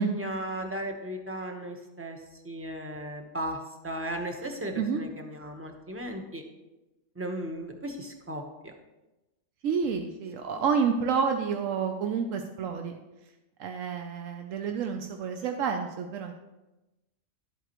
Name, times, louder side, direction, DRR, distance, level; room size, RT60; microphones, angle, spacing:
voice 1, 0.0-6.4 7.1-8.7 10.5-10.6, right 1 dB, 10° right, 3 dB, 0.8 m, -36 dB
voice 2, 9.6-12.9 13.6-16.3, right 6 dB, 85° right, 5 dB, 1.0 m, -29 dB
11.5 x 7.9 x 3.0 m, 1.0 s
omnidirectional pair, 1.3 m